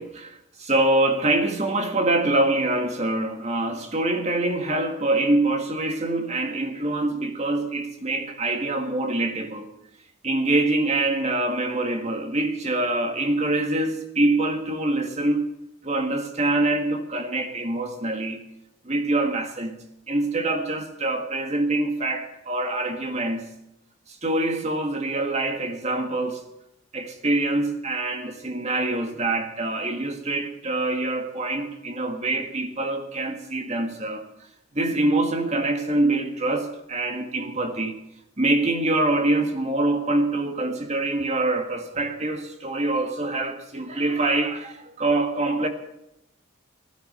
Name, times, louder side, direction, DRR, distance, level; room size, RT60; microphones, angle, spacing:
voice 1, 0.0-9.7 10.2-15.4 15.8-18.4 18.8-19.7 20.1-23.5 24.1-26.4 26.9-34.2 34.7-38.0 38.4-45.7, right 2 dB, 35° right, 1.8 m, -25 dB
15.5 x 13.5 x 6.8 m
head